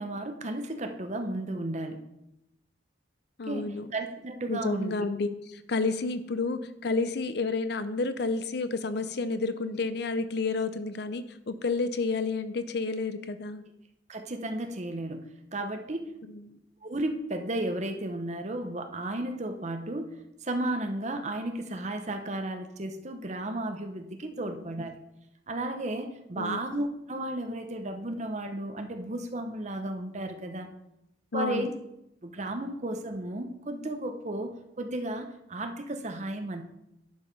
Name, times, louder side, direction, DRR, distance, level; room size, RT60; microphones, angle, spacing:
voice 1, 0.0-2.1 3.5-4.9 14.1-16.1 16.8-24.9 25.5-30.7 31.3-31.7 32.2-36.6, right 1 dB, 40° right, 6 dB, 0.9 m, -34 dB
voice 2, 3.4-3.9 4.5-5.3 5.7-13.6 16.3-16.6 24.4-24.6 26.4-26.6 31.3-31.7, left 3 dB, 60° left, 11 dB, 0.6 m, -30 dB
10.5 x 4.8 x 5.3 m, 0.85 s
head